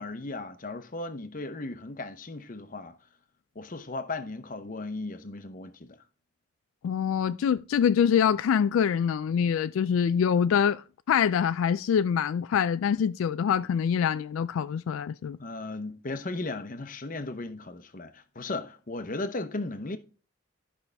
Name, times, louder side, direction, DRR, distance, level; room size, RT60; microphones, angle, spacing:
voice 1, 0.0-2.9 3.5-6.0 15.4-20.0, left 2 dB, 40° left, 0.8 m, -36 dB
voice 2, 6.8-15.4, left 7 dB, 80° left, 0.3 m, -25 dB
13.0 x 5.6 x 3.4 m
head